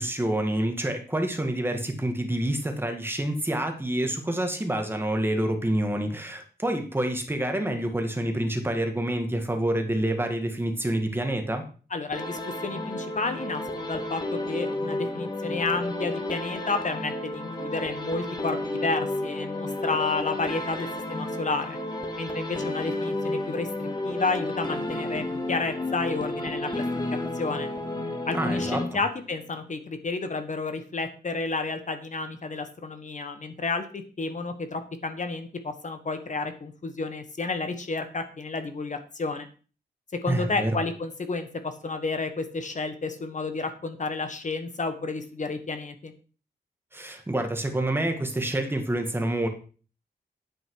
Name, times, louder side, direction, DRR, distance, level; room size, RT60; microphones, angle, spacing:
voice 1, 0.0-11.6 28.3-29.0 40.3-40.8 46.9-49.5, right 1 dB, 15° right, 4 dB, 1.8 m, -27 dB
voice 2, 11.9-14.2 14.5-21.8 22.2-26.8 27.3-27.7 28.2-39.5 40.2-46.1, left 3 dB, 45° left, 8 dB, 1.4 m, -31 dB
sound 1, 12.1-29.3, left 2 dB, 25° left, 1.9 m, -32 dB
9.9 x 8.8 x 4.8 m, 0.38 s
wide cardioid pair, 155°, 17 cm